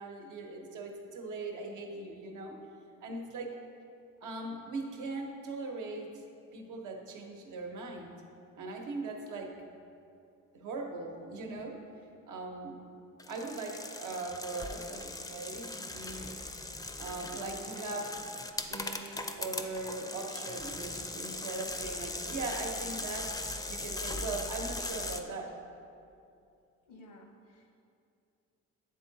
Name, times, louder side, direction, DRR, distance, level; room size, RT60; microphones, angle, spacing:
voice 1, 0.0-2.6 3.0-3.6 4.2-6.1 6.5-8.2 8.6-9.5 10.5-11.8 12.3-12.8 13.3-16.3 17.0-18.1 18.6-23.4 23.7-25.5, right 3 dB, 80° right, 1 dB, 0.9 m, -40 dB
sound 1, 13.2-25.2, left 2 dB, 10° left, 0.4 m, -39 dB
voice 2, 26.8-27.8, left 1 dB, 90° left, 1 dB, 1.1 m, -55 dB
9.1 x 3.7 x 4.0 m, 2.5 s
cardioid pair, 90°, 30 cm